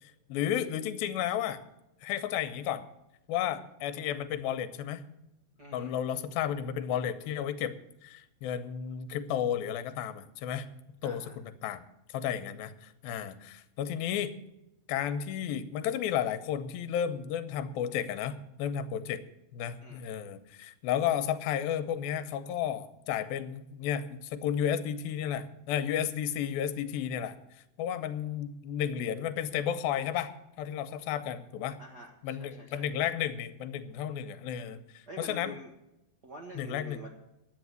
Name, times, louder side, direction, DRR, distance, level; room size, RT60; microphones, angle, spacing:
voice 1, 0.0-1.6 2.0-2.8 3.3-5.0 5.7-7.8 8.0-10.7 11.0-11.8 12.1-14.3 14.9-19.2 19.5-27.4 27.8-30.3 30.6-31.8 32.2-35.6 36.6-37.0, left 9 dB, 80° left, 11 dB, 2.7 m, -33 dB
voice 2, 5.6-5.9 11.0-11.3 19.8-20.0 31.8-32.8 35.1-35.7 36.2-37.1, right 1 dB, 75° right, 1 dB, 0.9 m, -46 dB
11.0 x 8.4 x 9.4 m, 0.88 s
omnidirectional pair, 4.2 m